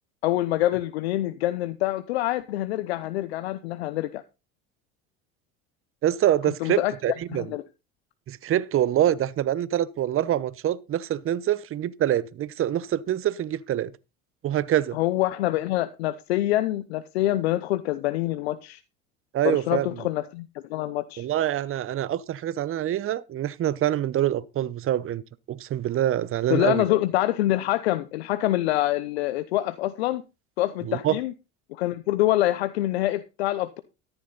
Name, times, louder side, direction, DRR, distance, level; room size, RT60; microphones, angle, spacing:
voice 1, 0.2-4.2 6.6-6.9 7.3-7.6 14.9-18.8 19.4-21.3 26.5-30.2 30.6-31.3 31.7-33.8, left 15 dB, 85° left, 0.9 m, -25 dB
voice 2, 6.0-7.5 8.3-13.9 14.4-15.0 19.3-19.9 21.2-25.2 25.5-26.8 30.9-31.2, right 12 dB, 45° right, 0.9 m, -25 dB
13.5 x 11.0 x 4.0 m
hypercardioid pair, 75°, 31 cm